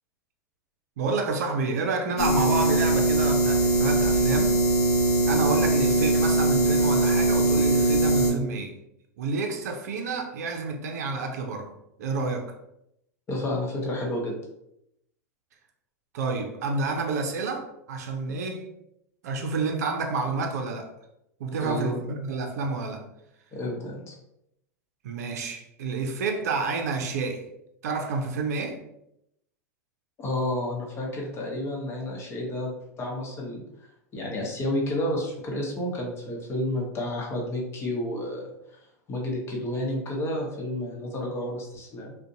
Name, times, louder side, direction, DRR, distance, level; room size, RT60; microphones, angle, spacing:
voice 1, 1.0-4.6 5.3-8.8 9.2-11.7 12.0-12.5 16.1-18.7 19.2-20.9 21.4-23.1 25.0-27.5 27.8-28.8, right 4 dB, 70° right, 0.5 m, -29 dB
sound 1, 2.2-8.3, right 1 dB, 85° left, 0.7 m, -21 dB
voice 2, 13.3-14.3 21.6-22.0 23.5-24.1 30.2-32.7 33.0-33.6 34.1-38.4 39.1-42.2, left 1 dB, 30° left, 0.8 m, -30 dB
2.5 x 2.1 x 2.6 m
hypercardioid pair, 95°, 9 cm